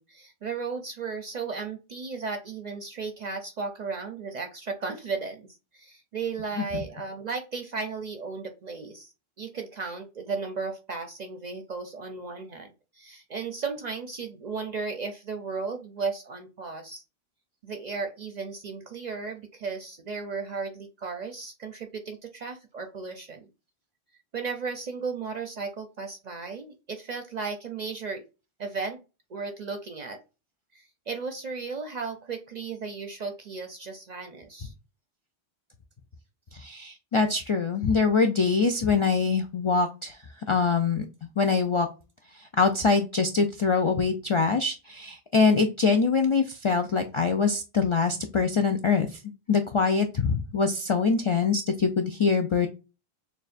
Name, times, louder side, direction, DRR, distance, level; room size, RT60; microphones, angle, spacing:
voice 1, 0.0-5.5 5.7-9.1 9.4-17.0 17.6-23.5 24.3-28.2 28.6-29.0 29.3-30.2 30.7-34.7, right 4 dB, 50° right, 5 dB, 0.6 m, -35 dB
voice 2, 36.5-40.2 40.5-41.1 41.4-41.9 42.3-49.2 49.5-52.7, left 5 dB, 55° left, 5 dB, 0.3 m, -24 dB
6.5 x 2.3 x 2.5 m, 0.29 s
omnidirectional pair, 1.0 m